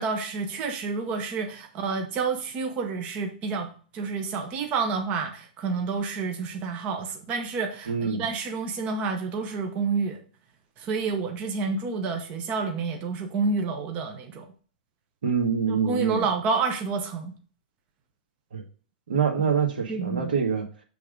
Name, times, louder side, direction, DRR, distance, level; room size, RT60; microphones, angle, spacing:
voice 1, 0.0-10.2 10.8-14.5 15.7-17.3 19.4-19.5 19.9-20.3, right 4 dB, 30° right, 4 dB, 0.8 m, -29 dB
voice 2, 7.9-8.2 15.2-16.2 18.5-18.6 19.1-20.6, right 6 dB, 80° right, 3 dB, 1.4 m, -25 dB
6.5 x 3.5 x 5.0 m, 0.41 s
hypercardioid pair, 145°, 5 cm